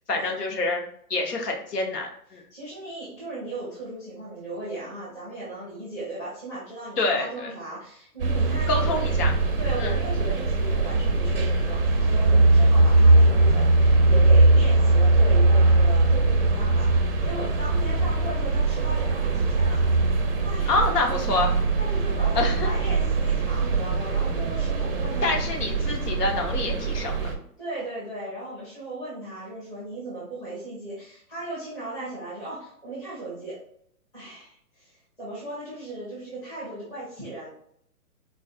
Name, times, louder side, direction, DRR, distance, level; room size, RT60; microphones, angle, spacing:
voice 1, 0.1-0.8 1.1-2.4 7.0-7.5 8.7-9.3 9.8-9.9 20.7-21.5 22.3-22.7 25.2-27.3, left 2 dB, 85° left, 2 dB, 1.0 m, -26 dB
voice 2, 2.5-9.2 9.6-19.8 20.4-21.1 21.8-25.3 27.6-33.6 34.1-37.5, right 2 dB, 5° left, -10 dB, 0.7 m, -37 dB
sound 1, 8.2-27.3, right 2 dB, 40° right, 0.4 m, -21 dB
3.9 x 2.5 x 2.4 m, 0.66 s
hypercardioid pair, 155°, 46 cm